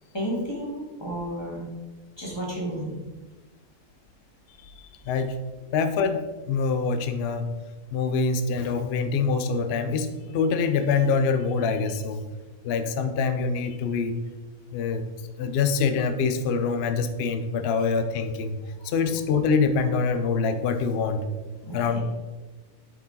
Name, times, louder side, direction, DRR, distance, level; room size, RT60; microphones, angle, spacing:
voice 1, 0.1-1.7 2.2-3.0 18.8-18.9 21.6-22.0, equal, 15° left, -4 dB, 1.9 m, -32 dB
voice 2, 5.0-5.4 5.7-7.5 7.9-12.2 12.6-14.1 14.7-15.0 15.4-18.6 18.8-21.2 21.7-22.0, left 5 dB, 60° left, 9 dB, 0.7 m, -25 dB
9.0 x 4.8 x 3.9 m, 1.2 s
omnidirectional pair, 1.6 m